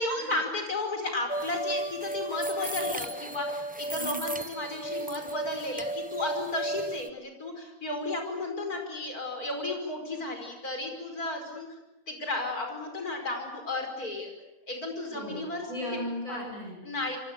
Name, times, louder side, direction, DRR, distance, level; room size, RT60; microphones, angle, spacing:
voice 1, 0.0-11.7 12.1-14.3 14.7-15.7 16.3-16.5 16.8-17.2, left 2 dB, 85° left, 4 dB, 5.7 m, -33 dB
sound 1, 1.3-7.1, right 2 dB, 10° right, 0.7 m, -34 dB
voice 2, 15.1-16.8, left 1 dB, 65° left, -1 dB, 7.5 m, -37 dB
27.0 x 23.5 x 8.2 m, 1.0 s
omnidirectional pair, 1.5 m